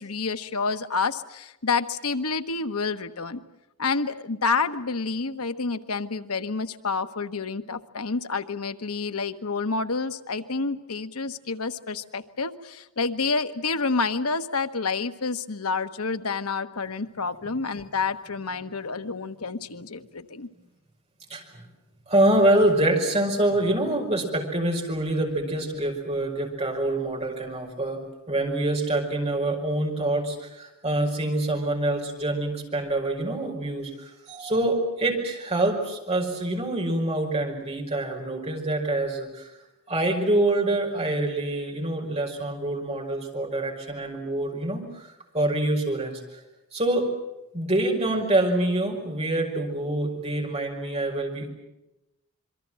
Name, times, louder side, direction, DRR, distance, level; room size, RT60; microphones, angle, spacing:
voice 1, 0.0-3.4 3.8-20.5, left 4 dB, 80° left, 10 dB, 1.2 m, -29 dB
voice 2, 21.3-21.6 22.1-39.5 39.9-46.4 46.7-47.1 47.5-51.5, right 1 dB, 30° right, 1 dB, 5.3 m, -26 dB
26.5 x 23.5 x 7.6 m, 0.96 s
head